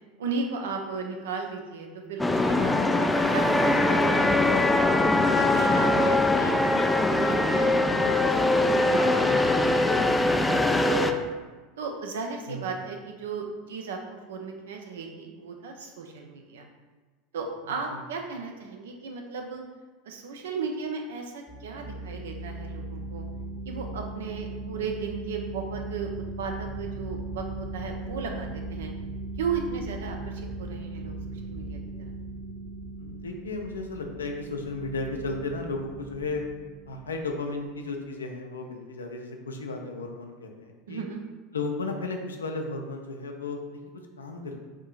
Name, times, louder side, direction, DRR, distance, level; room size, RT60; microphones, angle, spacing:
voice 1, 0.2-4.8 5.3-11.1 11.8-16.7 17.3-19.6 20.1-23.2 23.6-26.1 26.4-28.9 29.4-31.1 31.4-32.1 40.9-41.2, right 5 dB, 65° right, 3 dB, 0.5 m, -36 dB
sound 1, 2.2-11.1, left 2 dB, 10° left, 0.3 m, -22 dB
sound 2, 21.5-37.7, right 2 dB, 40° right, 1.5 m, -38 dB
voice 2, 33.0-36.5 36.9-41.1 41.5-44.6, left 3 dB, 75° left, 2 dB, 0.5 m, -34 dB
7.2 x 2.7 x 2.4 m, 1.3 s
figure-of-eight pair, 75°, 0 cm